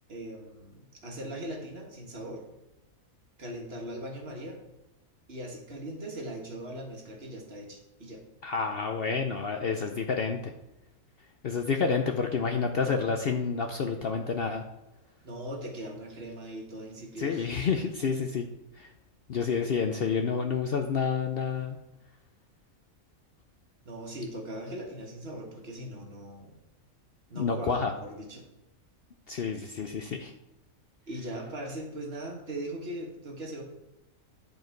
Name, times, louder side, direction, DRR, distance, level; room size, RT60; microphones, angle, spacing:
voice 1, 0.1-2.4 3.4-4.6 5.3-8.2 15.2-17.5 23.8-26.5 27.3-28.4 31.1-33.6, right 1 dB, 50° right, 1 dB, 1.6 m, -40 dB
voice 2, 8.4-10.5 11.4-14.6 17.2-18.5 18.8-18.9 19.3-21.8 27.4-27.9 29.3-30.3, left 5 dB, 55° left, 5 dB, 0.7 m, -29 dB
10.5 x 4.7 x 4.5 m, 0.91 s
omnidirectional pair, 1.4 m